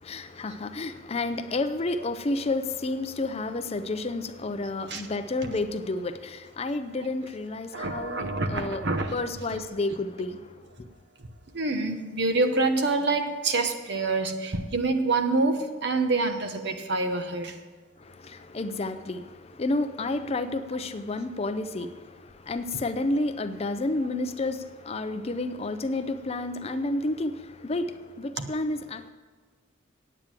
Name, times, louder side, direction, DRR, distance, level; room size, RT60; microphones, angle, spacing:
voice 1, 0.0-8.8 9.1-10.5 18.0-29.1, left 2 dB, 30° left, 10 dB, 0.5 m, -30 dB
voice 2, 7.7-9.1 11.5-17.6 28.4-28.5, right 3 dB, 55° right, 7 dB, 1.0 m, -26 dB
9.0 x 8.8 x 7.4 m, 1.4 s
head